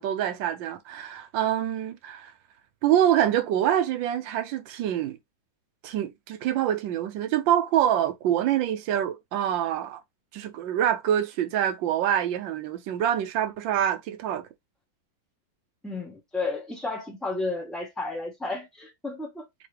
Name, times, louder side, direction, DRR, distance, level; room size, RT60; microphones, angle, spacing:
voice 1, 0.0-2.3 2.8-5.2 5.8-10.0 10.3-14.5, right 11 dB, 75° right, 1.3 m, -25 dB
voice 2, 15.8-19.4, left 3 dB, ahead, 0.9 m, -32 dB
3.5 x 3.0 x 3.2 m
omnidirectional pair, 2.2 m